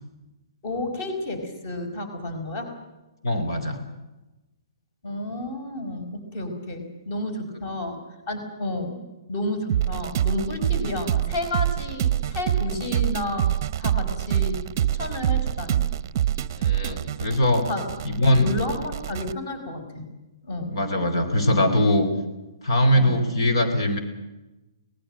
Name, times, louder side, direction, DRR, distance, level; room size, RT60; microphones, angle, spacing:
voice 1, 0.6-2.7 5.0-8.0 8.3-9.0 9.3-13.5 13.8-15.9 17.7-17.9 18.3-20.1 20.4-20.8 22.9-23.1, left 2 dB, 30° left, 7 dB, 5.0 m, -31 dB
voice 2, 3.2-3.8 16.6-17.7 18.0-18.5 20.7-22.1 22.6-24.0, left 1 dB, 60° left, 7 dB, 4.2 m, -21 dB
sound 1, 9.7-19.3, right 11 dB, 35° right, 0.8 m, -26 dB
25.0 x 20.0 x 7.6 m, 1.0 s
hypercardioid pair, 170°, 3 cm